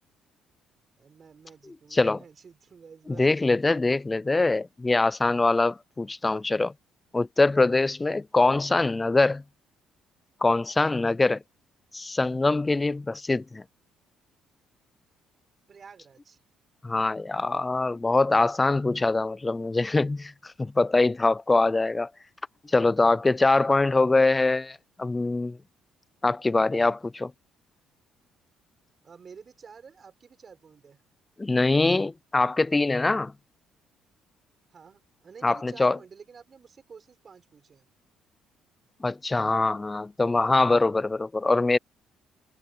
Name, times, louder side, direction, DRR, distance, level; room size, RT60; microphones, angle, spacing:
voice 1, 1.0-3.3 6.3-6.6 15.7-16.4 29.0-31.0 34.7-37.8, right 6 dB, 35° right, 6.4 m, -50 dB
voice 2, 3.1-6.7 7.1-9.4 10.4-11.4 11.9-13.6 16.8-22.1 22.6-25.6 26.2-27.3 31.4-33.3 35.4-36.0 39.0-41.8, left 3 dB, 15° left, 0.4 m, -23 dB
cardioid pair, 125°, 0 cm